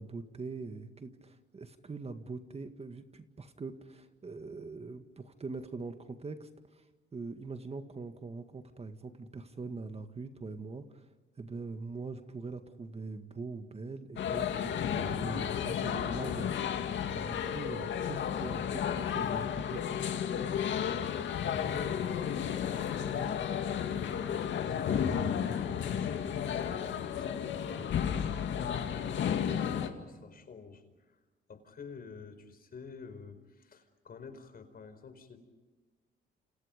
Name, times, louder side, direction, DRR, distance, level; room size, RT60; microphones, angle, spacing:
voice 1, 0.0-6.9 7.1-11.1 11.4-20.2, right 4 dB, 30° right, 8 dB, 1.9 m, -43 dB
sound 1, 14.2-29.9, left 8 dB, 70° left, 2.3 m, -33 dB
voice 2, 21.4-31.2 31.5-35.4, left 5 dB, 50° left, 9 dB, 4.7 m, -49 dB
29.0 x 28.5 x 5.2 m, 1.3 s
cardioid pair, 90°, 20 cm